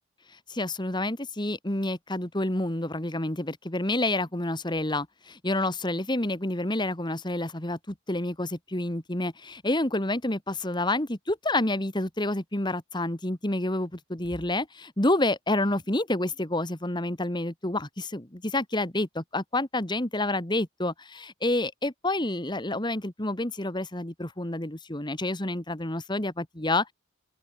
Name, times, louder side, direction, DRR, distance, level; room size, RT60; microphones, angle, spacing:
voice 1, 0.5-26.9, left 2 dB, 20° left, 2.0 m, -29 dB
open air
head